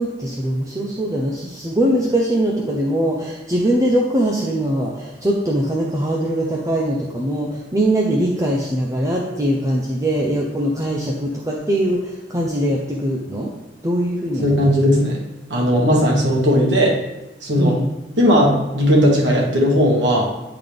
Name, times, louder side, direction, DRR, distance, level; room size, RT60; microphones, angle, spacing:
voice 1, 0.0-13.5 13.8-14.7 17.6-17.8, right 1 dB, 20° right, -2 dB, 0.6 m, -21 dB
voice 2, 14.4-15.2 15.5-17.0 17.4-17.8 18.2-20.3, equal, 80° right, -2 dB, 1.5 m, -16 dB
9.0 x 3.9 x 3.4 m, 1.0 s
head